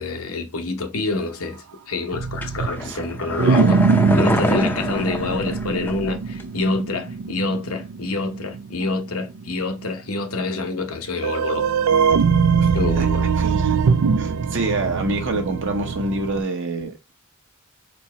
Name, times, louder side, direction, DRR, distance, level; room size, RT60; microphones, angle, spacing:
voice 1, 0.0-3.8 4.1-11.7 12.7-13.5, left 3 dB, 75° left, 0.9 m, -27 dB
sound 1, 2.1-9.6 9.8-9.9 10.5-10.6 11.1-16.4, right 5 dB, 75° right, 0.4 m, -22 dB
sound 2, 2.4-6.1 6.4-6.5, equal, 10° left, 0.5 m, -25 dB
voice 2, 12.6-13.1 13.4-13.8 14.1-17.1, right 2 dB, 55° right, 1.1 m, -27 dB
4.5 x 2.7 x 4.2 m
head